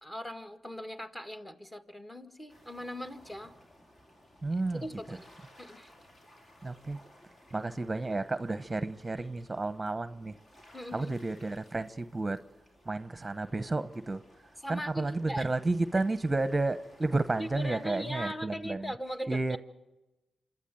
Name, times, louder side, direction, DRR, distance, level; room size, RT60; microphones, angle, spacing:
voice 1, 0.0-3.5 4.7-5.3 5.6-5.9 10.7-11.1 13.7-13.8 14.6-15.5 17.4-19.6, equal, 20° left, 9 dB, 1.7 m, -40 dB
sound 1, 2.5-18.3, left 1 dB, 50° left, 4.5 m, -59 dB
voice 2, 4.4-4.8 6.6-7.0 7.5-10.3 10.9-12.4 12.9-14.2 14.7-18.9 19.3-19.6, right 2 dB, 25° right, 12 dB, 0.8 m, -31 dB
26.5 x 12.0 x 9.1 m, 1.0 s
supercardioid pair, 50°, 0 cm